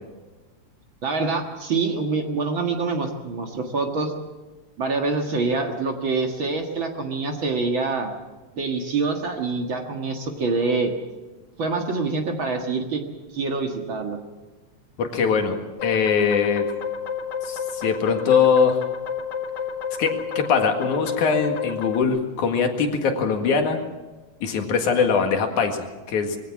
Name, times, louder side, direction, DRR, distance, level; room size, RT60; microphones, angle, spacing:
voice 1, 1.0-4.1 4.8-8.1 8.5-10.9 11.6-13.0 13.3-14.2, right 3 dB, 45° right, 3 dB, 2.2 m, -25 dB
voice 2, 15.0-16.7 17.4-18.8 20.0-23.8 24.4-26.4, left 5 dB, 85° left, 4 dB, 3.3 m, -22 dB
sound 1, 15.8-22.0, left 7 dB, 40° left, 1.9 m, -30 dB
22.5 x 16.0 x 7.3 m, 1.2 s
omnidirectional pair, 3.4 m